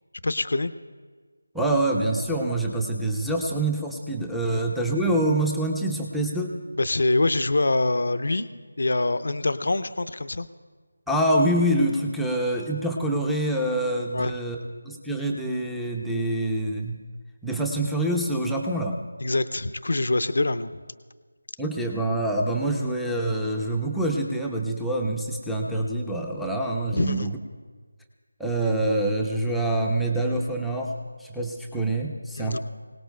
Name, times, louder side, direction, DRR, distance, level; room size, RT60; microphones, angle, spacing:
voice 1, 0.2-0.7 4.5-4.7 6.7-8.5 8.8-10.5 14.1-14.3 19.2-20.7 26.9-27.3 32.4-32.6, left 2 dB, 60° left, 12 dB, 0.6 m, -25 dB
voice 2, 1.5-6.5 11.1-14.6 14.8-17.0 17.4-19.0 21.6-27.3 28.4-30.9 31.2-32.6, right 1 dB, ahead, -2 dB, 0.7 m, -26 dB
25.5 x 18.0 x 2.3 m, 1.5 s
figure-of-eight pair, 165°, 0 cm